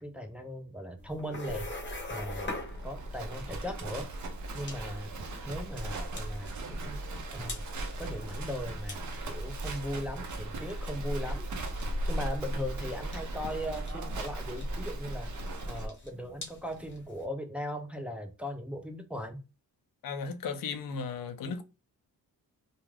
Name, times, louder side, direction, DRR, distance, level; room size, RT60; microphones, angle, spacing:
voice 1, 0.0-1.7 2.1-2.5 2.8-4.1 4.5-5.1 5.5-7.0 7.3-7.7 8.0-11.4 12.1-15.3 15.7-19.4, equal, 5° right, 0.4 m, -38 dB
sound 1, 1.0-17.2, left 2 dB, 30° left, 0.8 m, -46 dB
Livestock farm animals working animals, 1.4-15.9, right 1 dB, 55° right, 0.6 m, -37 dB
voice 2, 20.0-21.6, left 5 dB, 65° left, 0.5 m, -35 dB
2.3 x 2.3 x 3.2 m
cardioid pair, 105°, 37 cm